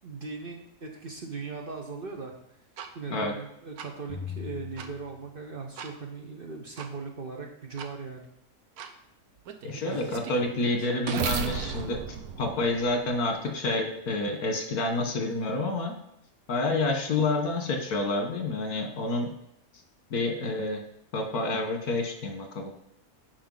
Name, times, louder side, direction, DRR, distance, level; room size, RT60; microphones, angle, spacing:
voice 1, 0.0-2.3 2.9-8.3, right 4 dB, 45° right, 2 dB, 0.9 m, -39 dB
sound 1, 2.8-2.9 3.8-3.9 4.8-4.9 5.8-5.9 6.8-6.9 7.8-7.9 8.8-8.9 9.5-13.3, right 7 dB, 80° right, 1.2 m, -35 dB
sound 2, 4.1-5.9, left 7 dB, 25° left, 3.1 m, -40 dB
voice 2, 9.6-12.0 12.4-15.9 16.5-19.3 20.1-20.8 21.1-22.9, left 2 dB, 80° left, 4 dB, 1.8 m, -28 dB
9.6 x 5.4 x 3.9 m, 0.76 s
omnidirectional pair, 1.6 m